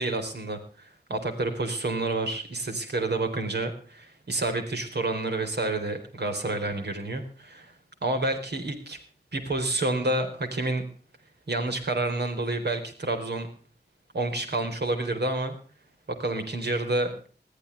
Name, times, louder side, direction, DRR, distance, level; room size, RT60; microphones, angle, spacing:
voice 1, 0.0-7.7 8.0-9.0 9.3-10.8 11.5-13.5 14.1-15.6 16.1-17.2, right 2 dB, 75° right, 5 dB, 4.3 m, -29 dB
20.5 x 14.5 x 3.5 m, 0.41 s
wide cardioid pair, 85°, 17 cm